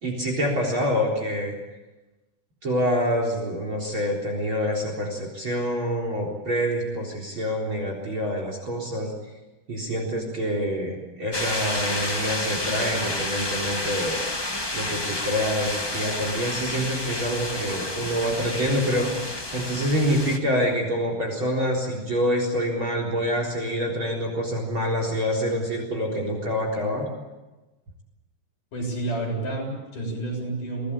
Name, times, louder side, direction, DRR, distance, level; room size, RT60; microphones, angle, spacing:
voice 1, 0.0-1.6 2.6-9.1 9.7-14.2 14.7-19.1 19.5-27.1, equal, 40° right, 1 dB, 4.6 m, -26 dB
sound 1, 11.3-20.4, left 1 dB, 15° left, 0.8 m, -30 dB
voice 2, 28.7-30.9, right 2 dB, 80° left, -1 dB, 9.2 m, -30 dB
24.0 x 18.5 x 8.9 m, 1.1 s
omnidirectional pair, 3.7 m